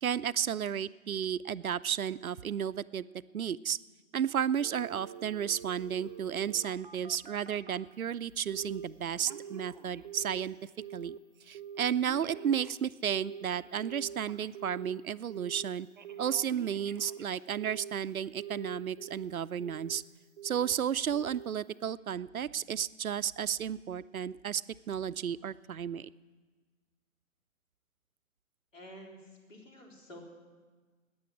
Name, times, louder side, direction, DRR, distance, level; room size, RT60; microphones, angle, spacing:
voice 1, 0.0-3.1 3.3-3.8 4.1-10.6 10.9-11.2 11.5-15.9 16.2-20.0 20.4-24.6 24.9-26.1, right 8 dB, 75° right, 16 dB, 0.6 m, -33 dB
Telephone, 4.6-7.9 8.5-8.9 9.1-10.5 10.8-11.2 11.5-14.9 15.3-15.7 16.0-18.0 18.4-19.3 19.6-20.0 20.4-20.8 21.1-21.5 21.9-22.0, right 7 dB, 35° right, 0.6 m, -45 dB
voice 2, 28.7-29.2 29.5-30.2, equal, 65° left, 0 dB, 3.8 m, -49 dB
14.0 x 9.5 x 9.7 m, 1.4 s
figure-of-eight pair, 135°, 42 cm